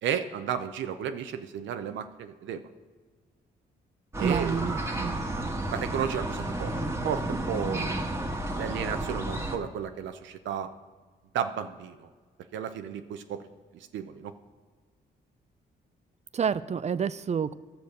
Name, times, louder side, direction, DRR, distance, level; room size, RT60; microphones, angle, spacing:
voice 1, 0.0-2.6 4.2-4.6 5.7-6.7 7.0-8.0 8.6-10.7 11.3-12.1 12.5-13.4 13.7-14.3, right 8 dB, 85° right, 8 dB, 0.6 m, -33 dB
sound 1, 4.1-9.6, right 1 dB, 15° right, 1.3 m, -32 dB
voice 2, 4.2-5.2 16.3-17.5, right 6 dB, 35° right, 16 dB, 0.4 m, -29 dB
11.5 x 6.9 x 6.6 m, 1.5 s
cardioid pair, 80°, 19 cm